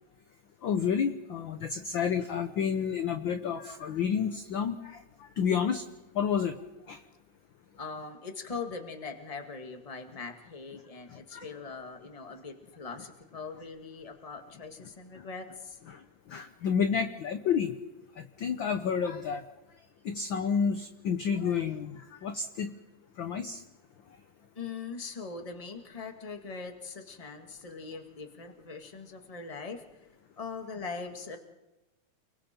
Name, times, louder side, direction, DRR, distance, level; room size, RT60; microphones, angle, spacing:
voice 1, 0.6-4.8 5.4-5.8 6.2-6.5 6.9-7.0 11.3-11.4 16.3-17.7 18.4-19.4 20.1-21.9 22.2-22.7 23.2-23.6, left 7 dB, 65° left, 8 dB, 1.2 m, -29 dB
voice 2, 7.8-15.8 24.5-29.8 30.4-31.4, left 4 dB, 15° left, 5 dB, 1.4 m, -41 dB
29.5 x 22.0 x 4.5 m, 1.0 s
omnidirectional pair, 3.4 m